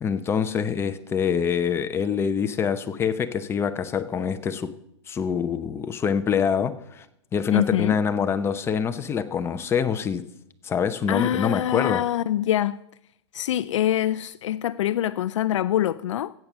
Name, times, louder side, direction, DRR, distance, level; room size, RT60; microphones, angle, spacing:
voice 1, 0.0-4.7 5.1-7.1 7.3-10.2 10.6-12.0, left 7 dB, 15° left, 0.8 m, -25 dB
voice 2, 7.5-8.0 11.1-12.8 13.3-16.3, left 12 dB, 85° left, 0.4 m, -24 dB
14.5 x 8.4 x 6.1 m
hypercardioid pair, 140°, 15 cm